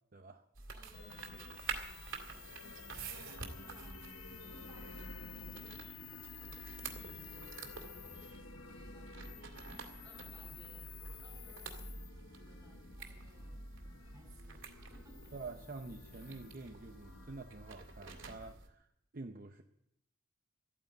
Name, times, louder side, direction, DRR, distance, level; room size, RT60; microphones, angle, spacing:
voice 1, 0.1-0.4 15.3-18.9 19.1-19.6, right 3 dB, 45° right, 5 dB, 0.7 m, -48 dB
sound 1, 0.5-18.7, right 4 dB, 65° right, 2.2 m, -49 dB
voice 2, 0.7-2.5 3.0-4.1 4.4-6.2 6.6-9.4 10.0-15.4, right 1 dB, 15° right, 4 dB, 4.6 m, -63 dB
sound 2, 0.9-18.5, left 5 dB, 85° left, 1.2 m, -52 dB
14.0 x 9.4 x 9.0 m, 0.83 s
head